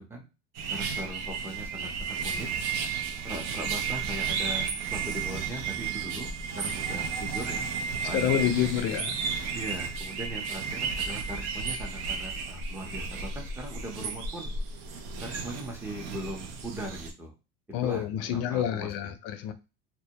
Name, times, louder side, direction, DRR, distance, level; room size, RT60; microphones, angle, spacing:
sound 1, 0.5-17.1, right 5 dB, 60° right, 0.5 m, -33 dB
voice 1, 0.7-2.5 3.2-7.7 8.0-8.5 9.5-14.6 15.2-17.3 17.8-19.1, right 1 dB, 10° right, 0.6 m, -39 dB
voice 2, 8.1-9.2 17.7-19.5, left 10 dB, 55° left, 0.5 m, -28 dB
2.2 x 2.1 x 2.8 m
supercardioid pair, 130°, 29 cm